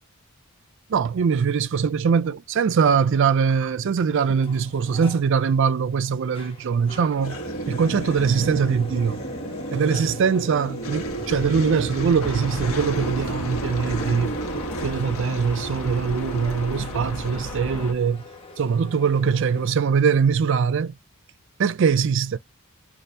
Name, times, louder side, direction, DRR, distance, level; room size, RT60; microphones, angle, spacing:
voice 1, 0.9-7.4 7.7-9.2 9.7-14.4 14.8-18.2 18.6-20.9 21.6-22.4, right 6 dB, 55° right, 0.4 m, -22 dB
sound 1, 4.3-19.7, left 3 dB, 25° left, 1.0 m, -44 dB
sound 2, 7.2-17.5, right 2 dB, 70° left, 1.2 m, -32 dB
sound 3, 12.2-17.9, left 1 dB, 90° left, 1.1 m, -34 dB
2.7 x 2.4 x 3.3 m
head